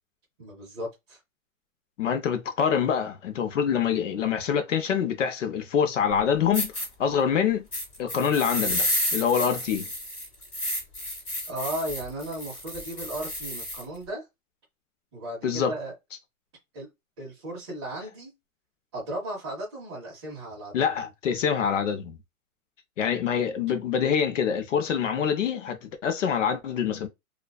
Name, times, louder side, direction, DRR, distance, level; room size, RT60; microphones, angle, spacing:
voice 1, 0.4-1.2 11.5-14.2 15.1-15.9 16.7-16.9 17.2-18.3 18.9-21.1, right 1 dB, 20° right, 0.7 m, -35 dB
voice 2, 2.0-7.7 8.0-9.9 15.4-15.7 20.7-22.2 23.0-27.1, left 7 dB, 55° left, 0.6 m, -25 dB
sound 1, 6.1-6.2 6.5-6.9 7.7-13.8, left 1 dB, 20° left, 1.4 m, -31 dB
2.3 x 2.3 x 2.2 m
hypercardioid pair, 170°, 44 cm